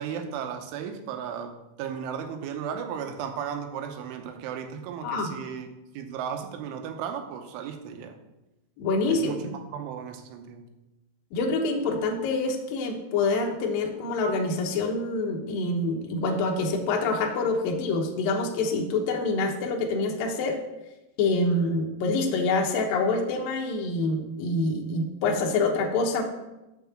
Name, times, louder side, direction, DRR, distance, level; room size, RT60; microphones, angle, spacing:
voice 1, 0.0-5.7 5.9-8.2 9.1-10.7, right 7 dB, 85° right, 6 dB, 3.3 m, -35 dB
voice 2, 8.8-9.3 11.3-20.6 21.2-26.2, left 3 dB, 75° left, 1 dB, 2.1 m, -26 dB
7.0 x 5.7 x 7.0 m, 0.98 s
omnidirectional pair, 5.5 m